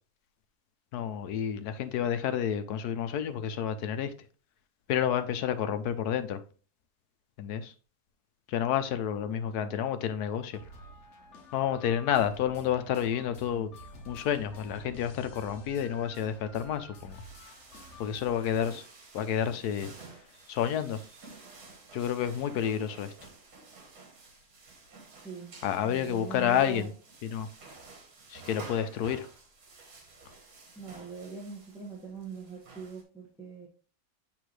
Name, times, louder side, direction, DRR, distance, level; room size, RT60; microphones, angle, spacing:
voice 1, 0.9-4.1 4.9-6.4 7.4-7.7 8.5-10.6 11.5-13.7 14.1-17.2 18.0-18.8 19.1-19.9 20.5-21.0 21.9-23.1 25.6-26.9 27.2-27.5 28.3-29.3, left 9 dB, 85° left, 1.2 m, -30 dB
sound 1, 10.5-18.6, left 1 dB, 50° left, 1.2 m, -49 dB
sound 2, 17.1-33.0, right 3 dB, 70° right, 1.9 m, -52 dB
voice 2, 25.2-25.5 25.8-26.9 30.7-33.7, right 4 dB, 5° right, 1.4 m, -42 dB
7.9 x 3.7 x 3.2 m
omnidirectional pair, 1.7 m